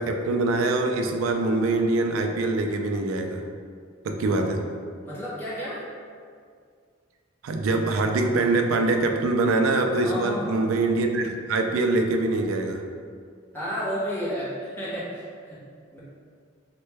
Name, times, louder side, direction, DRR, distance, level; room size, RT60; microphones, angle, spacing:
voice 1, 0.0-3.4 4.0-4.6 7.4-12.8, right 2 dB, 80° right, 4 dB, 0.3 m, -24 dB
voice 2, 5.0-5.8 10.0-10.6 13.5-15.6 15.9-16.0, equal, 10° left, -10 dB, 0.8 m, -31 dB
3.1 x 2.1 x 3.2 m, 2.1 s
head